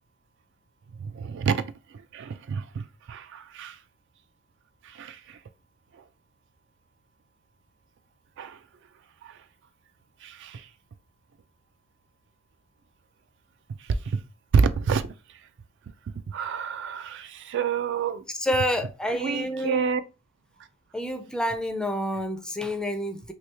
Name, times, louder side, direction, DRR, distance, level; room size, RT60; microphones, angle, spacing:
voice 1, 1.1-1.6 2.1-2.8 3.1-3.8 4.9-5.4 8.4-8.6 9.2-9.3 10.2-10.6 14.1-14.2 14.5-15.0 16.3-18.2 19.1-20.0, right 6 dB, 60° right, 0.3 m, -27 dB
voice 2, 18.3-19.9 20.9-23.3, equal, 5° left, 0.4 m, -28 dB
3.0 x 2.6 x 3.3 m
head